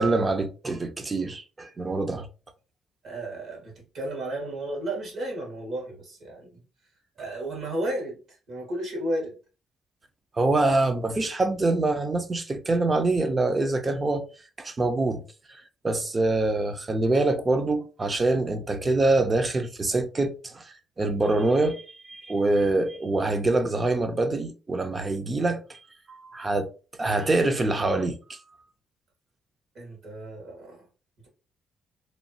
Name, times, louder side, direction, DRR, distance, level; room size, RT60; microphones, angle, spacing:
voice 1, 0.0-2.3 10.4-14.3 14.6-15.2 15.8-25.8 26.1-26.7 27.0-28.4, right 2 dB, 30° right, 0.5 m, -25 dB
voice 2, 3.0-6.6 7.2-9.3 29.7-30.9, right 1 dB, 65° right, 1.7 m, -33 dB
3.1 x 2.4 x 2.8 m
cardioid pair, 90°, 0 cm